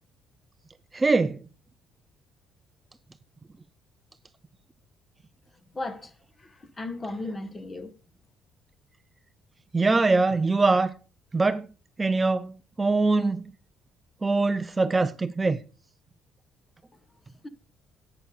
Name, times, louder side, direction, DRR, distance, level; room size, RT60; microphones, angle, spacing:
voice 1, 0.9-1.4 9.7-10.9 11.3-11.7 12.0-13.4 14.2-15.6, right 3 dB, 20° right, 0.5 m, -23 dB
voice 2, 5.7-6.1 6.4-7.9 17.4-17.5, left 2 dB, 20° left, 1.2 m, -35 dB
11.0 x 8.6 x 5.0 m
cardioid pair, 130°, 0 cm